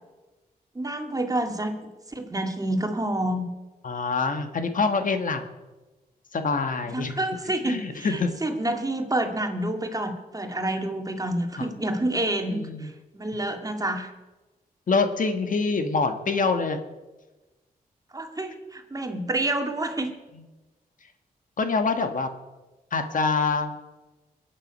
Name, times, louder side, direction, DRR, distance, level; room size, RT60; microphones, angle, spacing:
voice 1, 0.8-1.7 2.1-3.5 6.9-14.1 18.1-20.1, right 1 dB, 25° right, 4 dB, 2.0 m, -28 dB
voice 2, 3.8-5.5 6.3-7.2 7.6-8.3 11.5-11.7 12.4-12.9 14.9-16.8 20.3-20.4 21.6-22.3 22.9-23.7, left 4 dB, 55° left, 7 dB, 1.4 m, -25 dB
22.5 x 9.1 x 5.4 m, 1.2 s
cardioid pair, 80°, 16 cm